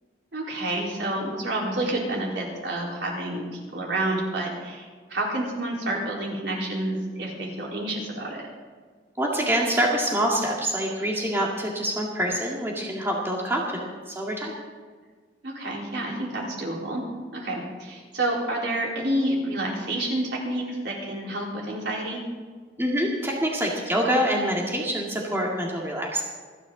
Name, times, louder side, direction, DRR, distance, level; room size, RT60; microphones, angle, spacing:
voice 1, 0.3-8.5 15.4-17.0 17.3-22.2, right 1 dB, 75° right, -3 dB, 4.3 m, -29 dB
voice 2, 9.2-14.5 22.8-26.2, right 1 dB, 15° right, -2 dB, 2.1 m, -26 dB
27.0 x 10.0 x 3.9 m, 1.5 s
head